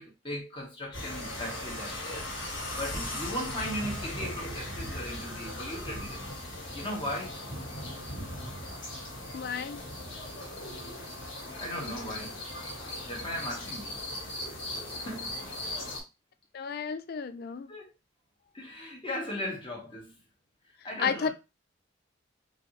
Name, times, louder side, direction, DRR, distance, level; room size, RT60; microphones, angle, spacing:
voice 1, 0.0-2.3 2.7-6.2 6.7-7.4 11.6-12.4 13.1-14.0 15.0-15.3 17.7-17.9 18.5-20.1 20.8-21.3, equal, 25° left, 1.5 m, -37 dB
sound 1, 0.9-16.0, left 1 dB, 70° left, 1.9 m, -38 dB
voice 2, 9.3-9.8 16.5-17.7 21.0-21.3, left 6 dB, 55° left, 0.4 m, -32 dB
4.4 x 2.8 x 3.1 m
head